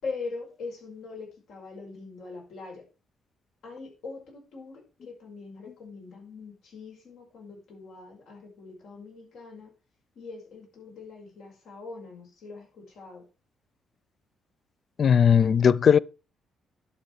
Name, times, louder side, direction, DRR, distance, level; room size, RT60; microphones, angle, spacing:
voice 1, 0.0-2.9 3.6-9.7 10.1-13.3, left 4 dB, 75° left, 5.5 m, -42 dB
voice 2, 15.0-16.0, left 7 dB, 50° left, 0.4 m, -18 dB
11.0 x 6.8 x 4.7 m
cardioid pair, 90°, 0 cm